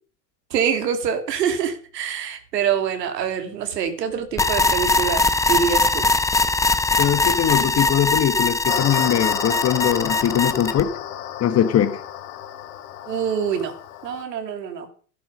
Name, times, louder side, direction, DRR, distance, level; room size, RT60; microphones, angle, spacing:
voice 1, 0.5-6.0 13.1-13.7 14.0-14.9, right 7 dB, 80° right, 2.9 m, -25 dB
sound 1, 4.4-10.8, left 2 dB, 5° left, 0.7 m, -21 dB
voice 2, 7.0-10.9 11.4-12.0, left 10 dB, 30° left, 1.4 m, -21 dB
sound 2, 8.7-14.2, left 11 dB, 65° left, 3.2 m, -32 dB
12.5 x 11.5 x 5.3 m
hypercardioid pair, 110°, 49 cm